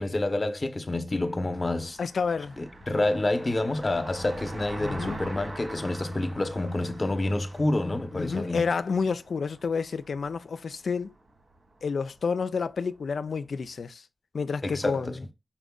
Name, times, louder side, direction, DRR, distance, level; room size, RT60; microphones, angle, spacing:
voice 1, 0.0-2.0 2.6-8.6 14.6-15.2, left 2 dB, 40° left, 0.8 m, -28 dB
Car passing by, 1.1-13.4, right 2 dB, 60° right, 2.0 m, -45 dB
voice 2, 2.0-2.6 4.8-5.2 8.1-11.1 11.8-14.0 14.3-15.2, left 5 dB, 80° left, 0.3 m, -29 dB
5.1 x 4.2 x 2.3 m
cardioid pair, 55°, 0 cm